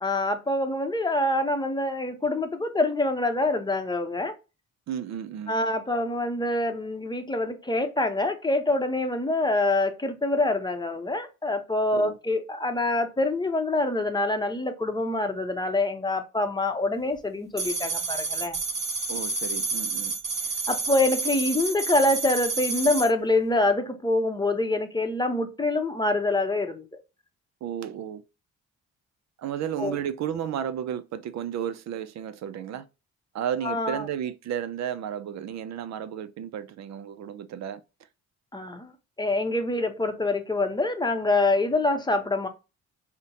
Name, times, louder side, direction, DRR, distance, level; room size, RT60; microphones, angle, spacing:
voice 1, 0.0-4.4 5.5-18.6 20.7-26.8 29.8-30.0 33.6-34.1 38.5-38.9 39.2-42.5, left 2 dB, 15° left, 0.7 m, -25 dB
voice 2, 4.9-5.6 11.9-12.2 19.1-20.2 27.6-28.2 29.4-32.9 33.3-37.8, right 9 dB, 65° right, 0.5 m, -33 dB
sound 1, 17.6-23.1, right 3 dB, 20° right, 0.8 m, -29 dB
5.1 x 2.1 x 2.8 m
cardioid pair, 90°, 30 cm